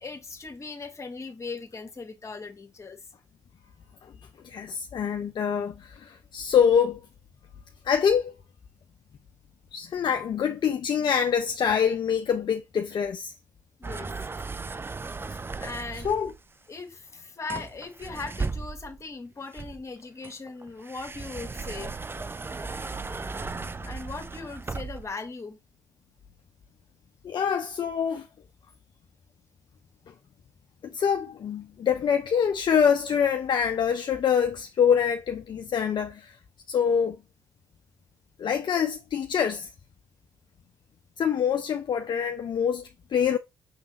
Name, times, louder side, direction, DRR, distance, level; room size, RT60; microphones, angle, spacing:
voice 1, 0.0-3.0 13.8-14.1 15.6-16.1 16.7-22.0 23.8-25.6, left 4 dB, 30° left, 1.8 m, -39 dB
voice 2, 4.4-7.0 7.8-8.3 9.7-13.3 16.0-16.3 27.2-28.3 30.8-36.4 36.7-37.2 38.4-39.7 41.2-43.4, left 7 dB, 50° left, 0.7 m, -25 dB
sound 1, 13.8-16.4 17.5-19.0 19.5-25.1, right 4 dB, 20° right, 0.6 m, -36 dB
6.5 x 3.5 x 4.2 m
hypercardioid pair, 50°, 10 cm